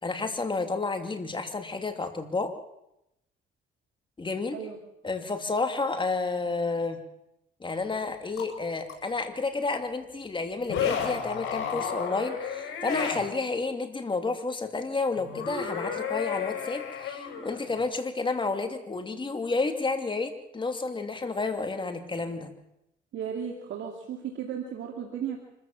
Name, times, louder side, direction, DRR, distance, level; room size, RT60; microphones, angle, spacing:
voice 1, 0.0-2.5 4.2-4.6 5.0-7.0 7.6-22.6, left 3 dB, 25° left, 6 dB, 2.7 m, -30 dB
sound 1, 8.4-8.5 8.9-9.0 10.6-13.2 15.2-17.8, left 7 dB, 85° left, 7.7 m, -32 dB
voice 2, 23.1-25.4, right 8 dB, 75° right, 1 dB, 2.6 m, -35 dB
25.0 x 14.5 x 7.5 m, 0.84 s
cardioid pair, 90°, 20 cm